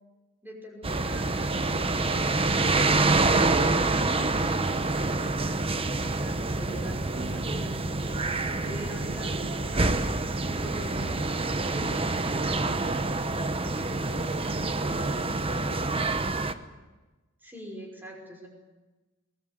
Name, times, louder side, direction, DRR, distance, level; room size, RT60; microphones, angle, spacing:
voice 1, 0.4-3.4 4.0-10.0 10.5-11.1 11.7-15.0 17.4-18.5, right 1 dB, 10° right, 0 dB, 5.6 m, -44 dB
sound 1, 0.8-16.5, right 3 dB, 25° right, 1.0 m, -27 dB
voice 2, 14.1-15.0 15.4-16.5, equal, 45° right, 3 dB, 2.2 m, -47 dB
22.5 x 20.0 x 8.2 m, 1.2 s
head